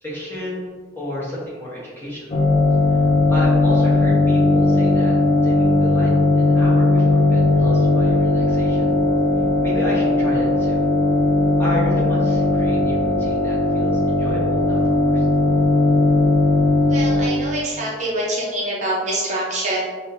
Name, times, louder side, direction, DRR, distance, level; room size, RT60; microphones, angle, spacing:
voice 1, 0.0-2.5 2.9-3.0 3.3-8.9 9.6-10.8 11.6-15.2, left 1 dB, 10° left, -7 dB, 1.1 m, -31 dB
sound 1, 2.3-17.3, left 2 dB, 30° left, 0.4 m, -17 dB
voice 2, 16.8-19.8, right 1 dB, 40° right, -4 dB, 0.7 m, -25 dB
5.9 x 2.8 x 2.6 m, 1.5 s
head